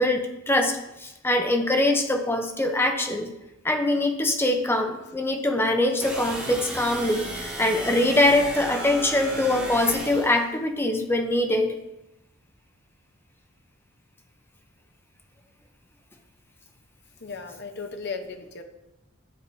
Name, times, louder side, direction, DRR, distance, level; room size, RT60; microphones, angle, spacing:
voice 1, 0.0-3.3 3.6-11.8, left 1 dB, 10° left, 5 dB, 0.6 m, -23 dB
sound 1, 6.0-10.4, right 1 dB, 5° right, 1.9 m, -35 dB
voice 2, 17.2-18.6, left 4 dB, 55° left, 5 dB, 0.8 m, -36 dB
11.0 x 7.0 x 2.7 m, 0.93 s
head